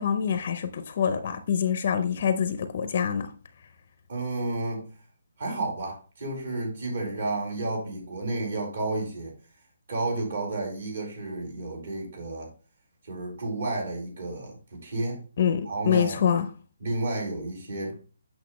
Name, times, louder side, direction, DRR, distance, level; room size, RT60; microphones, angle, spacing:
voice 1, 0.0-3.3 15.4-16.5, left 8 dB, 35° left, 0.6 m, -25 dB
voice 2, 4.1-4.9 5.4-9.3 9.9-12.5 13.0-15.2 15.6-16.2 16.8-18.0, right 2 dB, 50° right, 4.1 m, -31 dB
8.4 x 6.4 x 3.1 m
hypercardioid pair, 175°, 0 cm